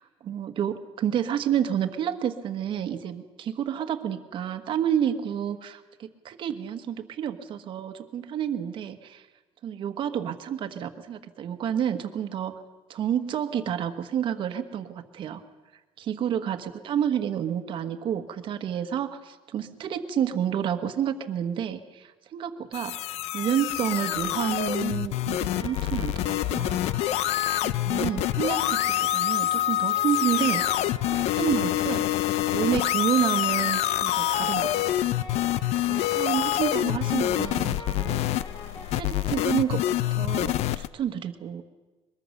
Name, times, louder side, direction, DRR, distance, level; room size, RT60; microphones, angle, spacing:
voice 1, 0.0-9.2 9.6-12.5 12.9-15.4 16.0-22.9 23.3-26.8 27.6-30.6 31.1-34.7 35.9-38.2 38.9-39.8 40.1-41.6, right 9 dB, 50° right, 7 dB, 1.4 m, -29 dB
sound 1, 22.7-40.9, left 14 dB, 75° left, 0.6 m, -26 dB
sound 2, 25.6-40.3, left 2 dB, 40° left, 5.7 m, -43 dB
22.5 x 22.0 x 6.7 m, 1.2 s
cardioid pair, 160°, 11 cm